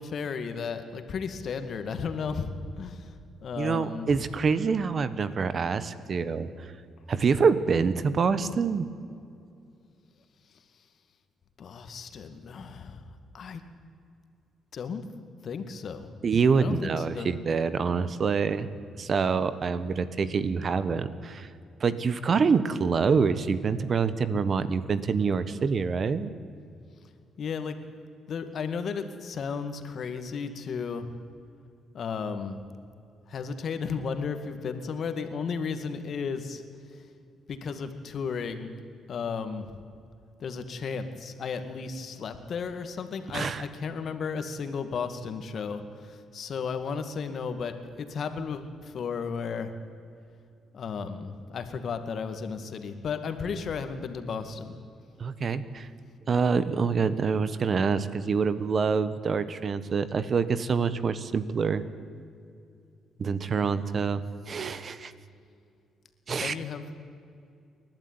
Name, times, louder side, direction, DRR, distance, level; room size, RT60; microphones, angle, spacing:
voice 1, 0.0-3.1 3.4-4.2 11.6-13.1 13.3-13.6 14.7-15.0 15.4-16.2 16.5-17.3 27.4-27.8 28.3-31.1 31.9-32.6 33.3-36.6 36.9-37.0 37.5-38.7 39.1-39.8 40.4-49.7 50.7-54.8 66.4-66.8, left 5 dB, 55° left, 8 dB, 2.2 m, -34 dB
voice 2, 3.6-6.7 7.1-8.9 16.2-18.7 19.0-21.5 21.8-26.3 43.3-43.6 55.2-55.9 56.3-61.8 63.2-64.2 64.5-65.1 66.3-66.5, right 5 dB, 45° right, 14 dB, 1.3 m, -26 dB
29.0 x 12.0 x 9.7 m, 2.4 s
cardioid pair, 90°, 0 cm